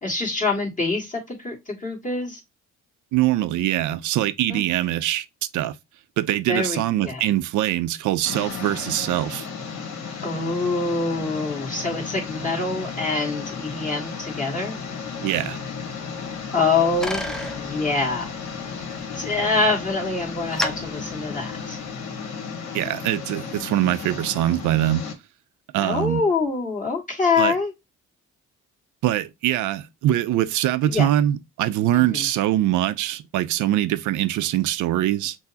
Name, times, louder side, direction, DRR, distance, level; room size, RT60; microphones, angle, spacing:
voice 1, 0.0-2.4 4.5-4.6 6.5-7.2 10.2-14.8 16.5-17.3 17.6-18.3 19.1-21.8 25.8-27.7 30.8-31.1 31.9-32.3, left 3 dB, 25° left, 1.6 m, -25 dB
voice 2, 3.1-5.3 5.5-5.8 6.2-9.5 15.2-15.6 22.7-25.0 25.7-26.2 27.4-27.5 29.0-35.4, right 13 dB, 80° right, 0.5 m, -23 dB
sound 1, 8.2-25.1, left 5 dB, 65° left, 1.2 m, -34 dB
Bicycle, 16.4-22.1, equal, ahead, 0.5 m, -35 dB
6.1 x 2.1 x 2.6 m
cardioid pair, 90°, 30 cm